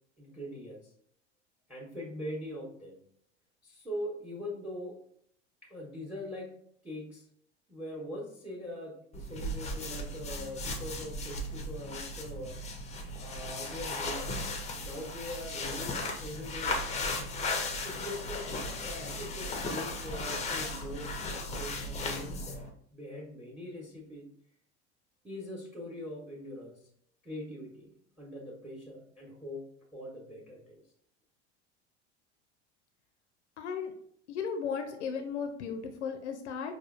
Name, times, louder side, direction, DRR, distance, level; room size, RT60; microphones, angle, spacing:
voice 1, 0.2-0.9 1.7-3.0 3.6-5.0 5.6-6.5 6.8-7.2 7.7-12.6 13.2-14.3 14.7-17.0 17.8-21.1 21.5-24.3 25.2-26.8 27.2-29.6 29.9-30.8, left 1 dB, 5° right, -2 dB, 0.9 m, -42 dB
sound 1, 9.1-22.7, left 2 dB, 20° left, 0.5 m, -36 dB
voice 2, 33.6-33.9 34.3-36.7, left 6 dB, 80° left, 6 dB, 0.5 m, -35 dB
4.8 x 2.3 x 2.4 m, 0.65 s
hypercardioid pair, 80°, 34 cm